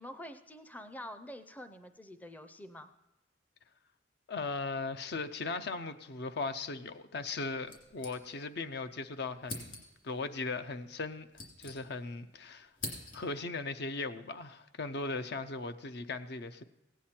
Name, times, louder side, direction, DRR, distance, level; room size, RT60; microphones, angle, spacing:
voice 1, 0.0-2.9, left 1 dB, 10° left, 9 dB, 0.5 m, -47 dB
voice 2, 4.3-12.7 13.1-16.6, left 3 dB, 60° left, 10 dB, 0.6 m, -38 dB
sound 1, 7.7-8.7 8.9-9.0 9.4-10.1 10.9-12.2 12.5-13.5, left 2 dB, 45° left, 2.9 m, -45 dB
16.5 x 9.2 x 4.4 m, 0.98 s
head